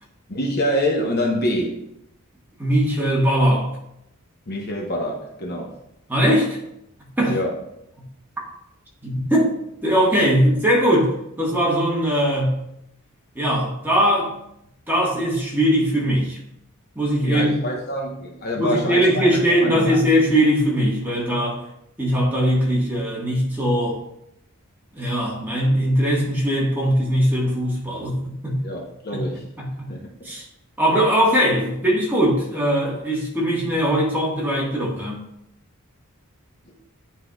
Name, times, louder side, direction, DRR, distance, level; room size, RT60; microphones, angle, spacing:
voice 1, 0.3-1.9 4.5-5.8 7.3-7.5 17.2-20.0 28.6-29.5 29.9-30.1, equal, 45° left, -1 dB, 1.0 m, -26 dB
voice 2, 2.6-3.8 6.1-6.6 7.2-7.3 9.0-9.5 9.8-12.6 13.3-14.3 14.9-16.4 16.9-17.5 18.6-21.6 22.0-24.0 24.9-28.6 29.1-29.3 29.6-29.9 30.2-30.4 30.8-35.2, equal, 10° right, -4 dB, 1.4 m, -20 dB
9.9 x 4.6 x 2.3 m, 0.79 s
head